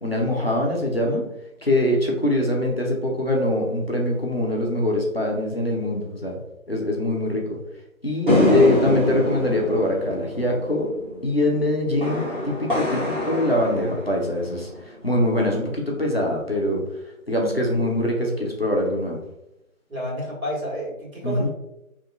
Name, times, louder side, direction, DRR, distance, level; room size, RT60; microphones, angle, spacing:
voice 1, 0.0-1.3 1.6-6.4 6.7-7.6 8.0-10.9 11.2-16.8 17.3-19.2 21.2-21.5, left 1 dB, 45° left, -2 dB, 0.5 m, -23 dB
sound 1, 8.3-14.8, left 1 dB, 35° right, 0.9 m, -24 dB
voice 2, 19.9-21.5, equal, 80° right, -3 dB, 1.5 m, -30 dB
2.8 x 2.5 x 2.3 m, 0.86 s
figure-of-eight pair, 175°, 42 cm